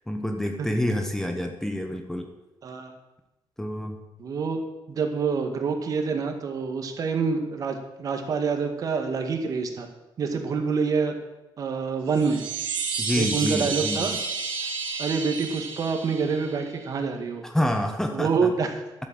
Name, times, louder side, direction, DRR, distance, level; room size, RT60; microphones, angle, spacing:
voice 1, 0.1-2.3 3.6-4.0 13.0-14.1 17.4-18.5, left 1 dB, 5° left, 5 dB, 1.0 m, -27 dB
voice 2, 4.2-4.6 4.9-9.9 10.2-11.2 11.6-12.4 13.2-14.2 15.0-17.4 18.1-18.8, right 5 dB, 45° right, 5 dB, 1.8 m, -27 dB
Chime, 12.1-16.8, right 4 dB, 85° right, 2.7 m, -31 dB
11.5 x 8.4 x 7.7 m, 1.0 s
cardioid pair, 155°, 8 cm